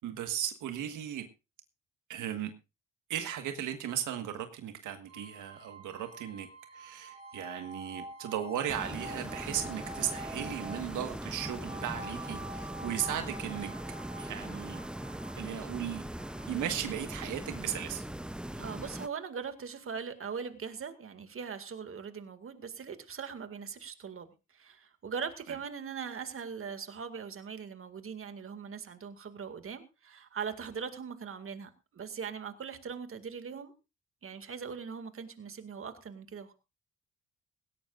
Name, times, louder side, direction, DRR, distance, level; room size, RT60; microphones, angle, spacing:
voice 1, 0.0-1.3 2.1-2.5 3.1-13.7 14.2-14.8 15.4-16.0 16.5-18.0 25.5-25.6, right 10 dB, 80° right, 1.6 m, -36 dB
sound 1, 5.1-20.0, right 1 dB, 20° right, 3.2 m, -48 dB
sound 2, 8.7-19.1, right 1 dB, 5° right, 0.6 m, -40 dB
voice 2, 18.5-33.7 34.2-36.5, right 6 dB, 45° right, 2.1 m, -41 dB
17.5 x 17.0 x 2.5 m
cardioid pair, 90°, 30 cm